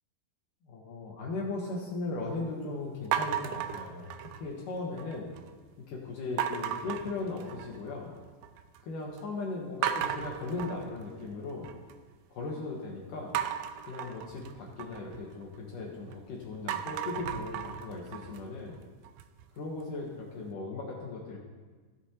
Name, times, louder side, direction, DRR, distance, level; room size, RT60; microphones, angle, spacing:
voice 1, 0.7-5.3 5.9-8.1 8.8-11.7 12.3-13.4 13.9-18.8 19.5-21.4, left 3 dB, 65° left, -2 dB, 2.3 m, -38 dB
sound 1, 3.1-4.6 5.0-5.5 6.4-7.9 8.2-8.8 9.2-9.3 9.8-11.9 13.3-16.1 16.5-19.4, right 10 dB, 85° right, 2.1 m, -35 dB
16.0 x 8.0 x 2.9 m, 1.4 s
omnidirectional pair, 4.8 m